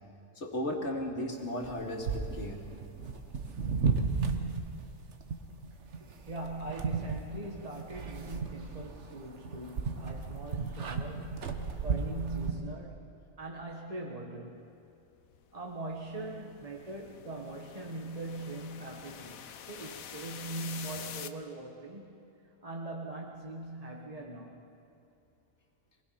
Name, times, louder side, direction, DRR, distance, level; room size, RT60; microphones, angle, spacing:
voice 1, 0.4-2.6, left 1 dB, 55° left, 1 dB, 2.5 m, -35 dB
sound 1, 1.6-12.5, right 5 dB, 60° right, 1.4 m, -34 dB
voice 2, 6.0-13.1 13.4-14.7 15.5-22.2 22.6-24.6, right 2 dB, 30° right, 0 dB, 1.3 m, -41 dB
sound 2, 15.3-21.3, left 8 dB, 85° left, 1.3 m, -47 dB
25.5 x 19.5 x 5.8 m, 2.7 s
omnidirectional pair, 1.4 m